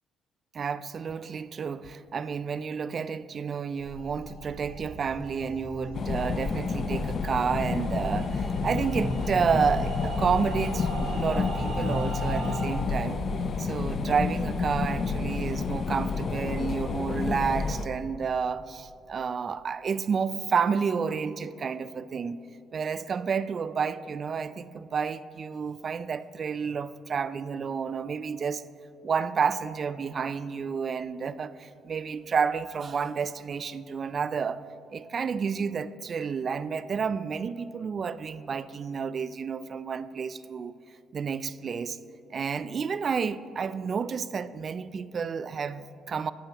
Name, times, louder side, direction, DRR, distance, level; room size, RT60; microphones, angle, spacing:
voice 1, 0.5-13.2 13.6-22.4 22.7-28.6 29.0-34.6 34.9-40.7 41.1-42.0 42.3-46.3, right 6 dB, 45° right, 15 dB, 0.3 m, -30 dB
sound 1, 3.8-12.6, right 1 dB, 80° right, 2.0 m, -36 dB
sound 2, 5.9-17.9, left 4 dB, 50° left, 0.5 m, -30 dB
12.0 x 8.6 x 2.9 m, 2.7 s
supercardioid pair, 70°, 0 cm